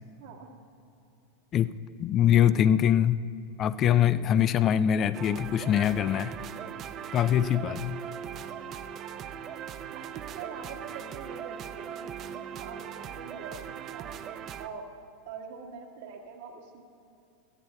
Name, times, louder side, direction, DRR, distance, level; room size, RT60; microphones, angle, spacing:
voice 1, 0.2-0.6 8.4-8.8 9.9-13.6 13.9-14.1 14.6-14.9 15.3-17.0, right 6 dB, 70° right, 1 dB, 1.5 m, -44 dB
voice 2, 2.0-3.2 3.6-6.4 7.1-8.0, left 10 dB, 40° left, 14 dB, 0.3 m, -23 dB
sound 1, 5.1-14.7, right 8 dB, 40° right, 0.5 m, -40 dB
17.5 x 13.5 x 2.2 m, 2.6 s
hypercardioid pair, 95°, 0 cm